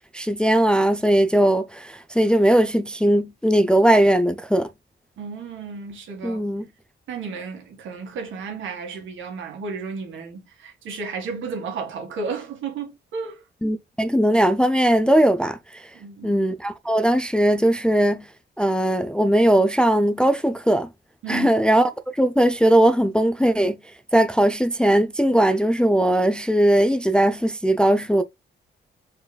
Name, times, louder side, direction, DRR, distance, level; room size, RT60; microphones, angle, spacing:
voice 1, 0.1-4.7 6.2-6.6 13.6-15.9 16.2-18.3 18.6-20.9 21.3-23.8 24.1-28.2, right 1 dB, 5° left, 0.4 m, -19 dB
voice 2, 5.2-6.4 7.1-13.4 15.9-16.3 21.2-21.5, right 5 dB, 75° right, 1.8 m, -33 dB
4.6 x 4.4 x 2.3 m
cardioid pair, 90°, 20 cm